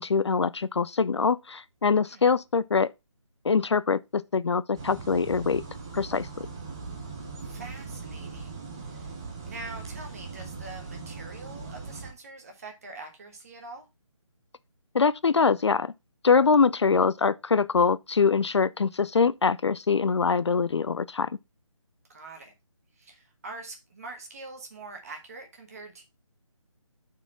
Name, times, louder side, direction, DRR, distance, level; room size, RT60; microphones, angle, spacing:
voice 1, 0.0-2.9 3.4-5.6 5.9-6.5 14.9-15.9 16.2-21.3, left 5 dB, 55° left, 0.4 m, -23 dB
sound 1, 4.7-12.1, right 4 dB, 10° right, 0.6 m, -40 dB
voice 2, 7.4-9.1 9.4-13.9 22.1-22.5 22.9-26.0, right 3 dB, 30° right, 1.5 m, -44 dB
5.7 x 4.8 x 5.7 m
figure-of-eight pair, 170°, 17 cm